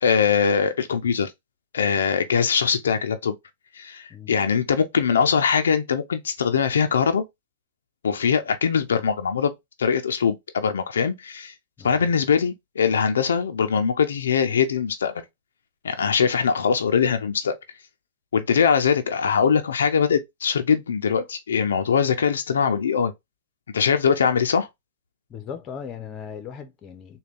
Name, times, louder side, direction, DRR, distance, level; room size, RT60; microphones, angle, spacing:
voice 1, 0.0-1.3 1.7-3.4 3.7-7.2 8.0-9.5 9.8-11.5 11.8-15.1 15.8-17.6 18.3-23.1 23.7-24.7, left 6 dB, 85° left, 0.5 m, -22 dB
voice 2, 11.8-12.1 25.3-27.2, left 7 dB, 30° left, 0.9 m, -38 dB
3.8 x 2.3 x 3.5 m
hypercardioid pair, 130°, 0 cm